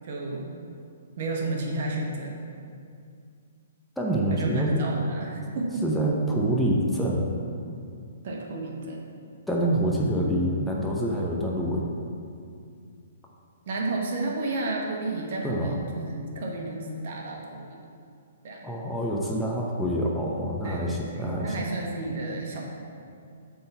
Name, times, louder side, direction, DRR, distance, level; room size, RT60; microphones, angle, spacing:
voice 1, 0.0-0.5 1.2-2.3 4.3-5.8 8.2-9.0 13.7-17.8 18.4-18.7 20.6-22.7, right 2 dB, 55° right, -1 dB, 1.3 m, -32 dB
voice 2, 4.0-4.9 5.8-7.2 9.5-11.9 15.4-15.8 18.6-21.6, right 1 dB, 5° left, -4 dB, 0.8 m, -26 dB
7.7 x 3.9 x 5.6 m, 2.4 s
hypercardioid pair, 135°, 0 cm